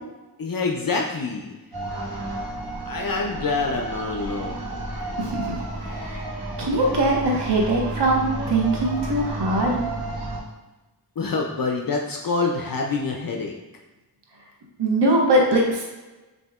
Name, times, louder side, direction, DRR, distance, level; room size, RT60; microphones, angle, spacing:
voice 1, 0.4-1.6 2.9-4.6 11.2-13.5, left 4 dB, 55° left, 0 dB, 0.5 m, -26 dB
sound 1, 1.7-10.4, right 2 dB, 65° right, 1.2 m, -32 dB
voice 2, 5.2-5.6 5.8-6.2 6.6-9.8 14.8-15.8, right 1 dB, 80° right, -1 dB, 0.7 m, -21 dB
6.3 x 2.7 x 2.3 m, 1.1 s
wide cardioid pair, 55°, 41 cm